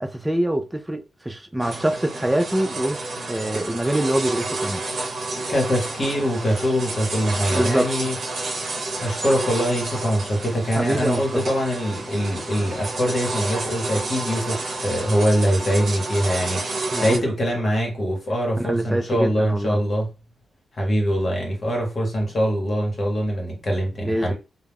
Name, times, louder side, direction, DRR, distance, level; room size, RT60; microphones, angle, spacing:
voice 1, 0.0-4.8 7.5-7.9 10.8-11.4 16.9-17.3 18.6-19.8 24.0-24.3, right 1 dB, 10° right, 0.4 m, -25 dB
sound 1, 1.6-17.2, right 2 dB, 60° right, 0.8 m, -30 dB
voice 2, 5.3-8.1 9.0-20.1 20.7-24.3, equal, 40° left, 1.0 m, -23 dB
2.3 x 2.0 x 3.4 m
wide cardioid pair, 115°, 0 cm